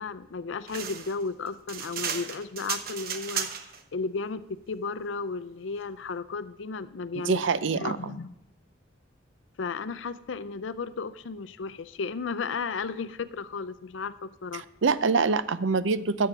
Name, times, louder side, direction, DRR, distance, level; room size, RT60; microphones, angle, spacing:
voice 1, 0.0-7.4 7.8-8.3 9.6-14.6, left 4 dB, 80° left, 15 dB, 0.5 m, -34 dB
sound 1, 0.7-3.8, right 7 dB, 50° right, 1.0 m, -34 dB
voice 2, 7.2-8.1 14.5-16.3, right 4 dB, 80° right, 15 dB, 0.6 m, -25 dB
13.0 x 7.8 x 6.0 m, 0.84 s
head